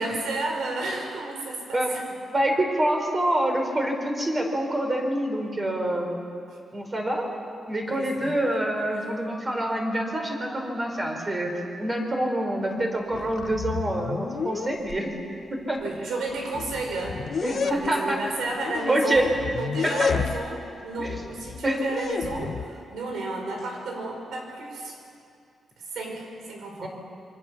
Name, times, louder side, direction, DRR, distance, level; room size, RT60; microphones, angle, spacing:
voice 1, 0.0-2.1 6.5-6.6 7.9-8.4 8.9-9.1 15.8-19.3 19.6-25.0 25.8-26.9, right 2 dB, 90° right, 1 dB, 5.9 m, -32 dB
voice 2, 2.3-6.1 6.7-7.3 7.7-11.5 11.8-15.1 15.5-15.8 17.4-18.2 18.9-19.3 21.6-21.8 26.8-26.9, right 1 dB, 20° right, 2 dB, 4.1 m, -26 dB
sound 1, 12.7-12.9 13.1-15.0 15.8-15.9 16.3-17.9 18.6-20.6 21.0-22.6, left 6 dB, 50° left, 0.9 m, -31 dB
28.0 x 24.0 x 7.2 m, 2.5 s
wide cardioid pair, 160°, 0 cm